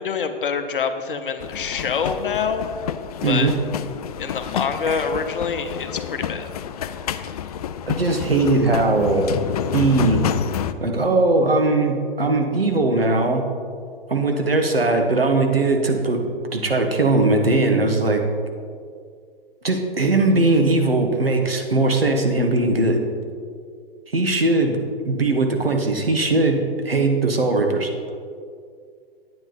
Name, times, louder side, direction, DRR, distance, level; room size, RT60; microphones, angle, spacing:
voice 1, 0.0-2.7 3.2-3.5 4.2-6.5, left 6 dB, 65° left, 8 dB, 0.9 m, -26 dB
sound 1, 1.4-10.7, left 9 dB, 40° left, 0.4 m, -29 dB
voice 2, 3.2-3.5 4.9-5.0 7.9-9.2 9.7-10.2 10.8-13.4 14.1-16.2 16.5-18.2 19.6-23.0 24.1-24.8 25.0-26.6 26.8-27.9, right 2 dB, 80° right, 3 dB, 1.3 m, -19 dB
9.6 x 8.7 x 4.3 m, 2.2 s
figure-of-eight pair, 110°, 29 cm